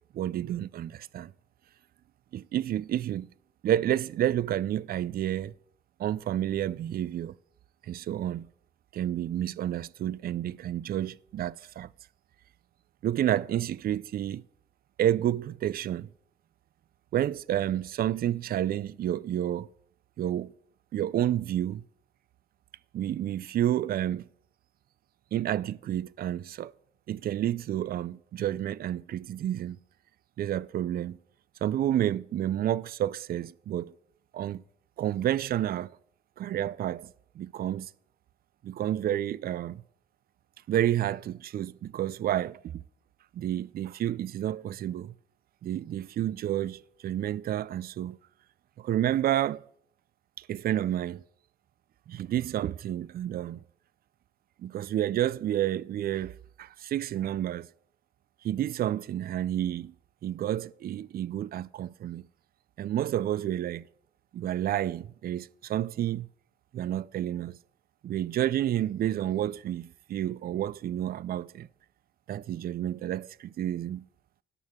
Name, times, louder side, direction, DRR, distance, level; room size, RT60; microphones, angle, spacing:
voice 1, 0.1-1.3 2.3-3.3 3.6-5.5 6.0-7.3 7.9-8.5 8.9-11.9 13.0-14.4 15.0-16.1 17.1-19.7 20.2-20.5 20.9-21.8 22.9-24.3 25.3-26.7 27.1-29.8 30.4-31.2 31.6-33.9 34.3-34.6 35.0-36.0 36.4-37.9 38.6-39.8 40.7-42.8 43.3-45.1 45.6-48.2 48.8-49.7 50.4-51.2 52.1-53.6 54.6-57.7 58.4-59.9 60.2-62.2 62.8-63.9 64.3-66.3 66.7-67.6 68.0-71.7 72.3-74.0, right 11 dB, 50° right, 0.4 m, -30 dB
17.5 x 6.3 x 3.6 m
cardioid pair, 90°, 20 cm